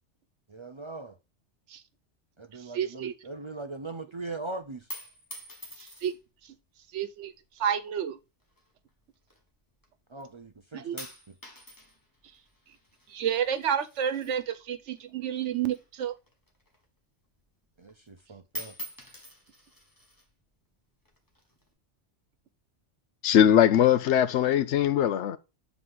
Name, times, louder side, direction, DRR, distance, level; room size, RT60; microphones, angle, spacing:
voice 1, 0.5-1.2 2.4-4.9 10.1-11.1 17.8-18.7, right 3 dB, 40° right, 0.4 m, -40 dB
voice 2, 2.5-3.1 5.8-6.2 6.4-6.6 6.9-8.2 10.7-11.0 13.1-16.1, right 9 dB, 80° right, 1.1 m, -30 dB
sound 1, 4.9-6.4 7.2-7.7 8.5-9.9 10.2-10.6 11.0-15.0 15.3-17.0 17.4-17.5 17.8-18.2 18.5-20.3 21.1-21.7, right 1 dB, 20° left, 1.5 m, -45 dB
voice 3, 23.2-25.4, left 10 dB, 75° left, 0.9 m, -21 dB
7.7 x 4.0 x 3.6 m
omnidirectional pair, 1.2 m